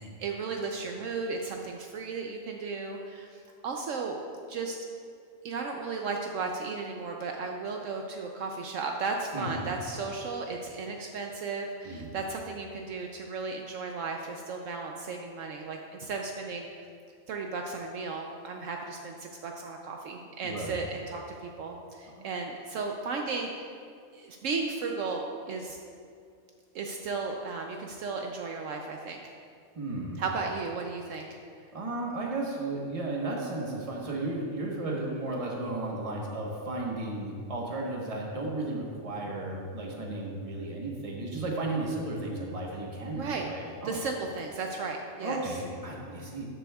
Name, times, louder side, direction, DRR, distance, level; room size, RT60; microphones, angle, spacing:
voice 1, 0.2-4.2 4.5-4.8 5.4-16.7 17.3-23.5 24.1-25.8 26.7-29.3 30.2-31.3 43.2-43.5 43.8-45.6, right 4 dB, 70° right, 2 dB, 0.9 m, -35 dB
voice 2, 9.3-9.7 11.8-12.1 20.4-20.9 22.2-22.3 29.7-30.2 31.7-44.0 45.2-46.5, right 2 dB, 25° right, -2 dB, 1.2 m, -34 dB
12.0 x 7.7 x 2.3 m, 2.4 s
omnidirectional pair, 1.4 m